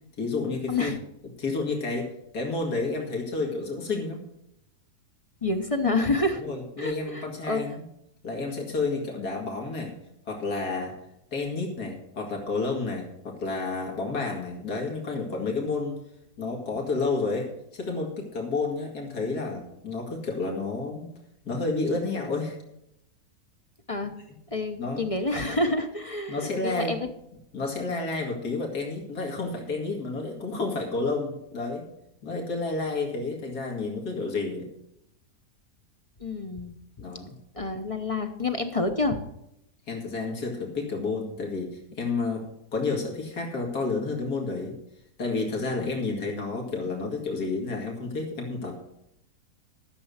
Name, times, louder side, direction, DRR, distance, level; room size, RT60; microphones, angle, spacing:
voice 1, 0.2-0.9 1.4-2.1 2.3-4.2 6.3-7.7 8.2-9.9 10.3-10.9 11.3-16.0 16.4-21.1 21.4-22.6 24.8-25.0 26.3-27.0 27.5-31.9 32.2-34.7 37.0-37.3 39.9-42.4 42.7-44.8 45.2-48.8, left 3 dB, 85° left, 0 dB, 2.7 m, -30 dB
voice 2, 0.7-1.0 5.4-6.4 6.8-7.6 23.9-24.1 24.5-27.0 36.2-36.8 37.5-39.2 45.8-45.9, left 2 dB, 30° left, 6 dB, 0.7 m, -28 dB
13.0 x 6.9 x 6.4 m, 0.80 s
omnidirectional pair, 1.6 m